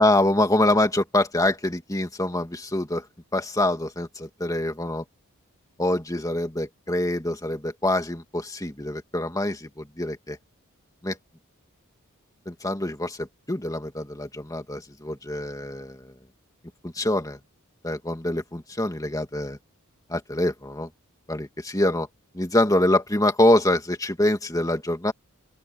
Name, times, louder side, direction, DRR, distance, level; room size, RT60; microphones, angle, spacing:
voice 1, 0.0-3.0 3.3-5.0 5.8-10.4 11.0-11.2 12.5-16.1 16.8-17.4 17.8-19.6 20.1-20.9 21.3-22.1 22.3-25.1, left 1 dB, 15° left, 2.3 m, -25 dB
open air
head